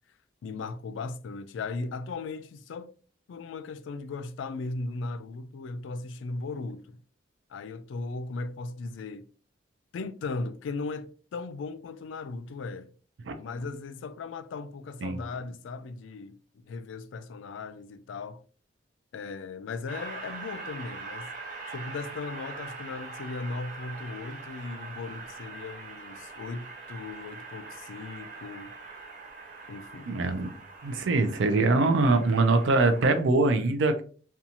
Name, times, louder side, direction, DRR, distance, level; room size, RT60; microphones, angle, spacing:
voice 1, 0.4-2.9 3.3-7.0 7.5-9.3 9.9-12.9 13.4-18.4 19.1-21.3 21.7-28.7 29.7-30.2, left 3 dB, 80° left, 0.3 m, -37 dB
Train, 19.9-33.2, right 4 dB, 45° right, 0.7 m, -43 dB
voice 2, 30.1-30.5 30.8-34.0, right 3 dB, 75° right, 0.4 m, -23 dB
2.8 x 2.3 x 2.5 m
head